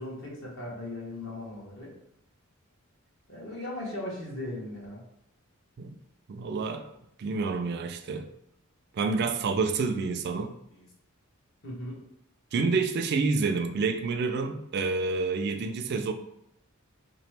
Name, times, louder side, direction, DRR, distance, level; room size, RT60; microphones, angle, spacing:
voice 1, 0.0-1.9 3.3-5.0 10.7-10.9 11.6-12.0, left 1 dB, 60° left, -4 dB, 1.3 m, -38 dB
voice 2, 6.3-6.9 7.2-8.3 8.9-10.5 12.5-16.1, right 4 dB, 50° right, 7 dB, 0.3 m, -28 dB
3.5 x 3.0 x 3.2 m, 0.79 s
head